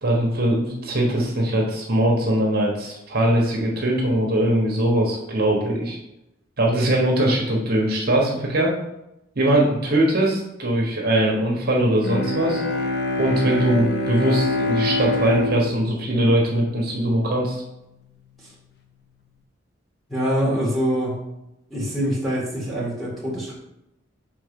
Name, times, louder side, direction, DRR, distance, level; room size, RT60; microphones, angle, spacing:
voice 1, 0.0-6.0 6.6-8.7 9.4-12.6 13.2-17.6, right 1 dB, 50° right, -2 dB, 1.3 m, -21 dB
Bowed string instrument, 12.0-17.3, left 2 dB, 55° left, 0.7 m, -26 dB
voice 2, 20.1-21.2 21.7-23.5, equal, ahead, -6 dB, 2.0 m, -24 dB
5.9 x 3.7 x 5.3 m, 0.88 s
head